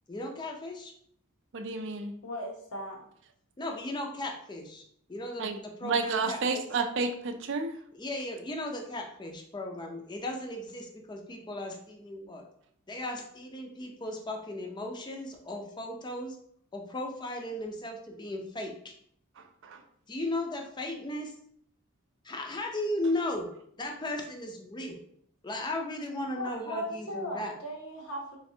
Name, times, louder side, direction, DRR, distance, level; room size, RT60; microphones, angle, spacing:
voice 1, 0.1-0.9 3.6-4.8 5.1-6.7 7.9-12.4 12.9-16.4 16.7-18.9 20.1-21.3 22.2-23.5 23.8-25.0 25.4-27.5, left 1 dB, 20° left, 3 dB, 0.5 m, -36 dB
voice 2, 1.5-2.2 5.4-7.8 19.6-19.8, right 4 dB, 55° right, 7 dB, 0.4 m, -31 dB
voice 3, 2.2-3.1 26.3-28.4, equal, 85° left, 0 dB, 0.9 m, -37 dB
3.5 x 3.1 x 2.7 m, 0.66 s
head